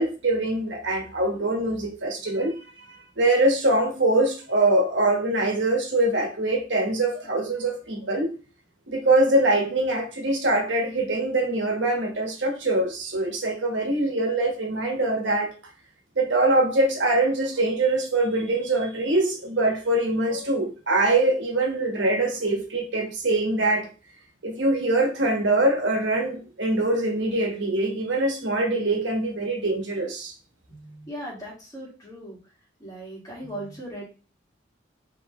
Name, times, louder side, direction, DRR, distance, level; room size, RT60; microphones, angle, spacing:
voice 1, 0.0-8.4 8.9-15.5 16.1-23.9 24.4-30.3, right 2 dB, 70° right, 2 dB, 1.3 m, -23 dB
voice 2, 30.7-32.4 32.8-34.0, right 1 dB, 20° left, -4 dB, 1.9 m, -38 dB
5.0 x 3.2 x 3.1 m, 0.34 s
head